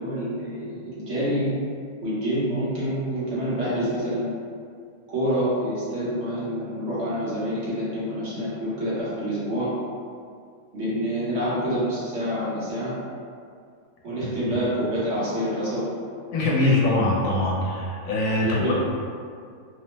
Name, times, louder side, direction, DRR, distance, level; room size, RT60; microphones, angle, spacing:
voice 1, 0.0-1.5 2.0-4.3 5.1-9.7 10.7-12.9 14.0-15.9 16.6-16.7 17.5-17.7 18.4-18.7, equal, 55° right, -10 dB, 1.1 m, -27 dB
voice 2, 16.3-18.7, left 2 dB, 70° left, -4 dB, 1.0 m, -22 dB
2.9 x 2.0 x 3.1 m, 2.2 s
omnidirectional pair, 1.5 m